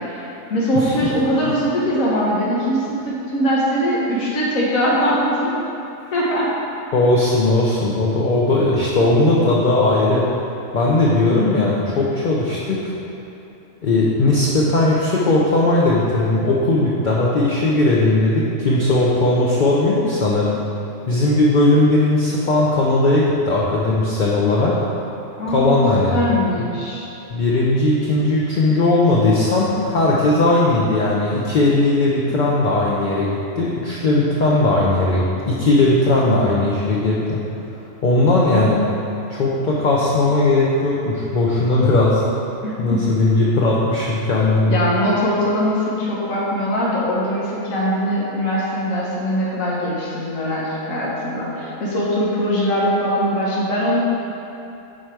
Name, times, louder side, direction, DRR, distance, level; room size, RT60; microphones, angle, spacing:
voice 1, 0.0-5.5 6.1-6.5 25.4-25.8 26.1-27.1 42.6-43.1 44.7-54.0, equal, 90° left, -6 dB, 1.5 m, -21 dB
voice 2, 0.7-1.1 1.4-1.5 6.9-10.3 10.7-12.8 13.8-20.6 21.1-24.8 25.5-26.1 26.6-26.7 27.3-37.4 38.0-38.8 39.3-42.2 42.8-44.8, left 2 dB, 45° left, -5 dB, 0.7 m, -18 dB
6.6 x 4.4 x 4.6 m, 2.9 s
omnidirectional pair, 1.4 m